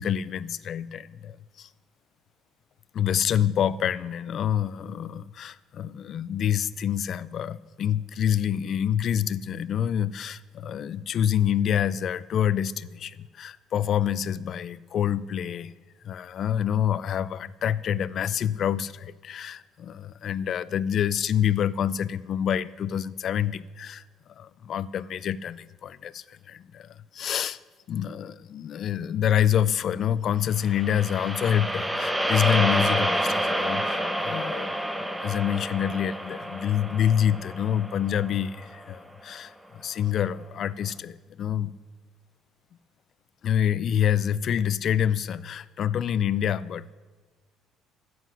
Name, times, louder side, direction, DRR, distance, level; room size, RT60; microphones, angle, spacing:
voice 1, 0.0-1.7 2.9-15.7 16.0-24.0 24.4-27.6 27.9-34.7 35.2-41.7 43.4-46.9, left 9 dB, 40° left, 18 dB, 0.4 m, -27 dB
sound 1, 30.6-38.9, equal, 5° right, 0.7 m, -28 dB
14.5 x 7.8 x 6.1 m, 1.4 s
cardioid pair, 165°, 0 cm